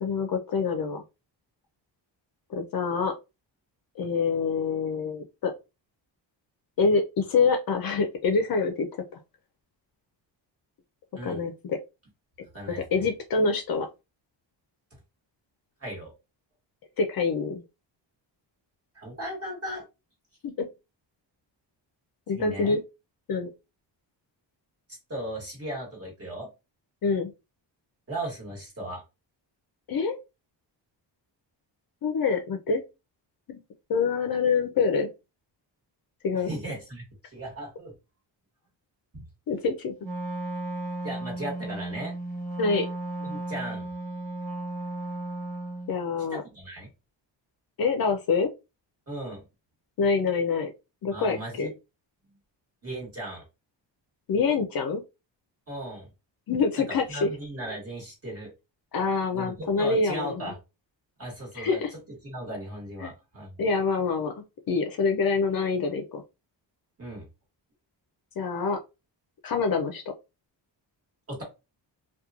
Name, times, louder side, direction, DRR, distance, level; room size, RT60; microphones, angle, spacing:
voice 1, 0.0-1.0 2.5-3.1 4.0-5.5 6.8-8.9 11.2-11.8 12.9-13.9 17.0-17.6 20.4-20.7 22.3-22.8 23.3-23.5 27.0-27.3 29.9-30.2 32.0-32.8 33.5-33.6 33.9-35.1 36.2-36.5 39.5-39.9 42.6-42.9 45.9-46.4 47.8-48.5 50.0-50.7 51.0-51.7 54.3-55.0 56.5-57.3 58.9-60.5 61.5-61.9 63.0-63.1 63.6-64.3 64.7-66.2 68.4-68.8 69.4-70.1, left 4 dB, 50° left, 5 dB, 0.5 m, -26 dB
voice 2, 12.5-13.1 15.8-16.1 18.9-19.8 22.3-22.8 24.9-26.5 28.1-29.0 36.4-37.9 39.1-39.2 41.0-42.1 43.2-43.9 46.3-46.9 49.1-49.4 51.1-51.7 52.8-53.4 55.7-56.1 57.1-58.5 59.3-60.6 61.2-61.8 62.2-63.5 67.0-67.2 71.3-71.4, right 1 dB, 30° right, -2 dB, 1.4 m, -37 dB
Wind instrument woodwind instrument, 40.0-46.0, right 2 dB, 75° right, 1.0 m, -34 dB
2.9 x 2.3 x 2.3 m, 0.26 s
wide cardioid pair, 160°, 45 cm